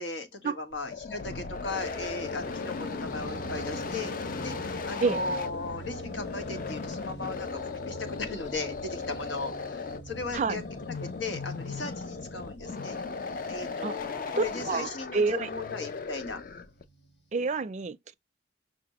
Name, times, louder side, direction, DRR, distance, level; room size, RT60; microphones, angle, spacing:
voice 1, 0.0-4.1 4.4-10.6 10.9-13.0 13.5-16.4, left 3 dB, 90° left, 1.1 m, -37 dB
sound 1, 0.7-16.8, left 4 dB, 50° left, 0.5 m, -37 dB
sound 2, 1.7-17.6, right 2 dB, 65° left, 1.2 m, -46 dB
voice 2, 14.4-15.5 17.3-18.1, right 4 dB, 40° right, 0.4 m, -28 dB
5.9 x 2.1 x 2.9 m
head